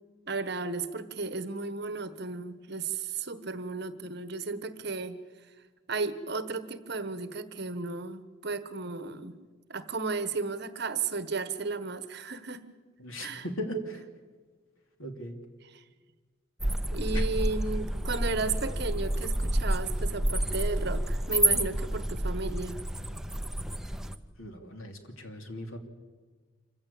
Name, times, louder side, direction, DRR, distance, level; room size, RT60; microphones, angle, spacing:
voice 1, 0.3-5.2 5.9-9.4 9.7-12.6 13.2-13.4 15.6-15.8 16.9-22.8, right 4 dB, 50° right, 13 dB, 1.2 m, -34 dB
voice 2, 13.0-14.0 15.0-15.3 17.1-17.3 24.4-25.8, equal, 80° left, 5 dB, 2.9 m, -38 dB
sound 1, 16.6-24.2, right 1 dB, ahead, 0.7 m, -29 dB
26.0 x 15.5 x 8.6 m, 1.5 s
head